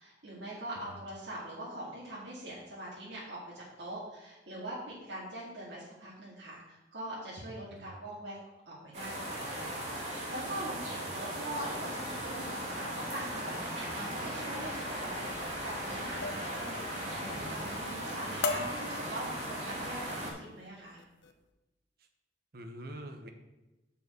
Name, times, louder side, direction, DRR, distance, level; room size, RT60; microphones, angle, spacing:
voice 1, 0.0-8.4 8.7-21.0, right 1 dB, 75° right, -8 dB, 2.4 m, -43 dB
sound 1, 8.9-20.3, equal, 40° right, 2.8 m, -38 dB
voice 2, 10.8-11.2 18.2-18.6 22.0-22.1 22.5-23.3, right 1 dB, 55° right, 6 dB, 1.0 m, -46 dB
sound 2, 16.2-16.6 16.9-17.4 17.8-18.1 18.4-19.8 20.4-20.6 21.0-21.3, left 4 dB, 80° left, 0.8 m, -38 dB
6.9 x 5.6 x 6.3 m, 1.0 s
head